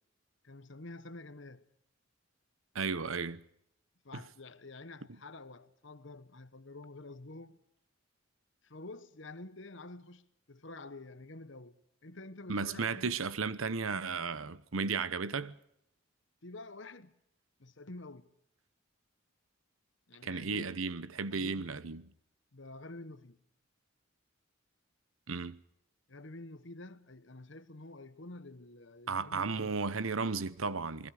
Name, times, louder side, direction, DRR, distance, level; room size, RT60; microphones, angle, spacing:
voice 1, 0.4-1.7 4.0-7.6 8.6-13.2 16.4-17.1 17.6-18.3 20.1-20.7 21.3-21.7 22.5-23.4 26.1-29.8, left 2 dB, 60° left, 1.2 m, -49 dB
voice 2, 2.7-3.4 4.1-4.2 12.5-15.5 20.2-22.0 25.3-25.6 29.1-31.1, right 4 dB, 80° right, 1.0 m, -34 dB
29.0 x 21.0 x 5.0 m
head